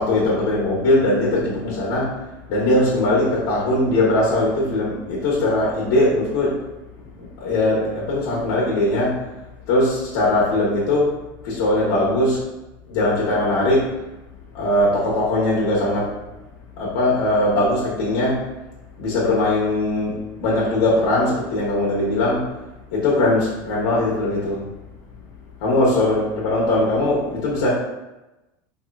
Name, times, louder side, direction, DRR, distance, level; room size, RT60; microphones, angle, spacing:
voice 1, 0.0-6.6 7.2-9.2 9.7-11.1 11.4-12.4 12.9-13.9 14.5-16.1 16.8-18.4 19.0-22.4 22.9-24.6 25.6-27.7, left 1 dB, 60° left, -6 dB, 1.0 m, -20 dB
4.5 x 2.9 x 2.3 m, 1.0 s
supercardioid pair, 180°, 11 cm